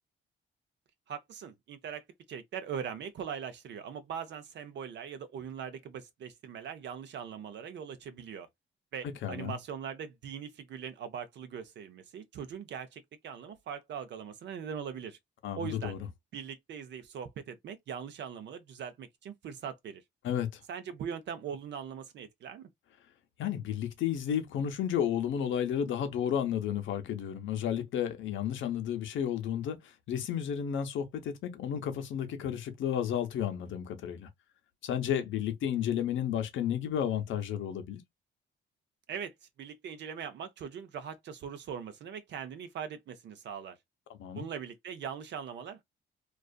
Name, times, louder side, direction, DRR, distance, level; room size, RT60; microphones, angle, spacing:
voice 1, 1.1-8.5 8.9-15.2 15.5-15.9 16.3-20.0 20.7-22.7 39.1-43.8 44.4-45.8, right 7 dB, 65° right, 0.5 m, -41 dB
voice 2, 9.2-9.6 15.4-16.1 20.2-20.6 23.4-34.3 34.8-38.0 44.1-44.5, left 9 dB, 75° left, 0.7 m, -32 dB
2.5 x 2.4 x 2.2 m
cardioid pair, 90°, 20 cm